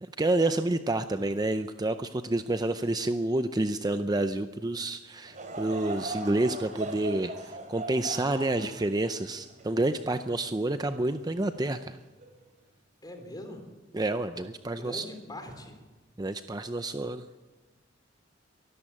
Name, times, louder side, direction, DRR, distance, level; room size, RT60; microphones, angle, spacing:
voice 1, 0.0-12.0 13.9-15.1 16.2-17.2, right 2 dB, 20° right, 10 dB, 0.6 m, -29 dB
Laughter / Crowd, 5.3-10.7 11.3-11.4 12.2-12.4, right 2 dB, 40° right, 3.3 m, -39 dB
voice 2, 13.0-13.6 14.8-15.7, left 1 dB, 20° left, 5 dB, 3.8 m, -42 dB
23.5 x 13.5 x 8.8 m, 1.2 s
head